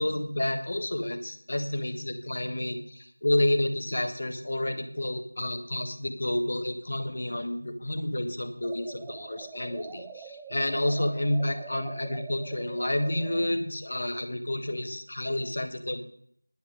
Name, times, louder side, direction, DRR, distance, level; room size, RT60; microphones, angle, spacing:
voice 1, 0.0-16.0, left 1 dB, 45° left, 7 dB, 1.4 m, -30 dB
sound 1, 8.6-13.5, right 6 dB, 5° right, 0.3 m, -45 dB
11.0 x 7.0 x 7.3 m, 0.65 s
figure-of-eight pair, 170°, 0 cm